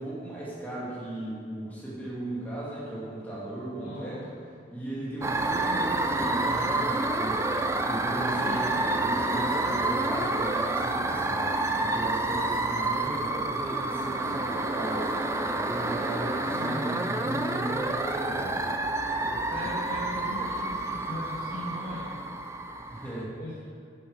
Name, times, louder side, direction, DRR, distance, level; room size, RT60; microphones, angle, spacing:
voice 1, 0.0-4.2 4.7-7.5 7.9-15.1 15.5-18.6 22.9-23.3, right 1 dB, 10° left, -8 dB, 2.8 m, -36 dB
voice 2, 3.8-4.1 8.3-8.8 16.4-17.7 19.5-22.1 23.4-23.5, left 1 dB, 45° left, -9 dB, 1.7 m, -39 dB
sound 1, 5.2-23.2, right 2 dB, 15° right, 0.4 m, -29 dB
9.6 x 7.3 x 5.7 m, 2.2 s
head